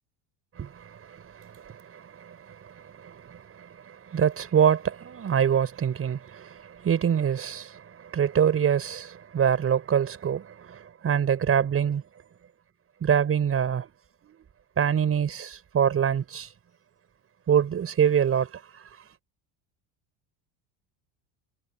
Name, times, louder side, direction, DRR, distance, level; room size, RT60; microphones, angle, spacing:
voice 1, 0.6-12.0 13.0-13.9 14.2-14.4 14.8-16.5 17.5-18.8, right 8 dB, 30° right, 5.7 m, -25 dB
cardioid pair, 145°, 46 cm